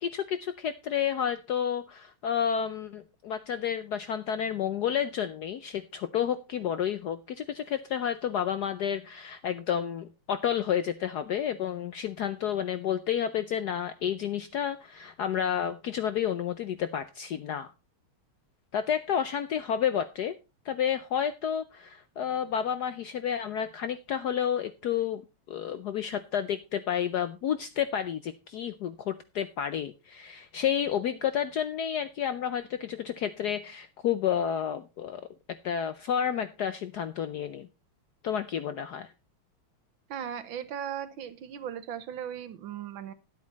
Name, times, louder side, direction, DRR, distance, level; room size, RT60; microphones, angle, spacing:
voice 1, 0.0-17.7 18.7-20.3 20.6-25.2 25.5-35.2 35.6-37.7 38.2-39.1, left 9 dB, 70° left, 12 dB, 1.0 m, -30 dB
voice 2, 40.1-43.1, right 9 dB, 70° right, 11 dB, 1.6 m, -37 dB
11.0 x 8.4 x 4.1 m, 0.28 s
omnidirectional pair, 2.4 m